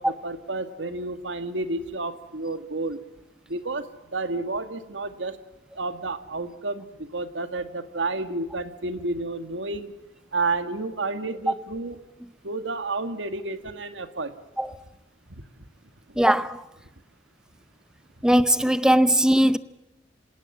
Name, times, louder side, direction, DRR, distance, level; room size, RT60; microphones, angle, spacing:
voice 1, 0.0-3.0 3.5-5.4 5.7-9.9 10.3-12.0 12.4-14.3 15.3-15.4, right 3 dB, 85° right, 1.8 m, -31 dB
voice 2, 16.2-16.6 18.2-19.6, right 1 dB, 5° right, 0.7 m, -19 dB
27.0 x 18.0 x 7.3 m
head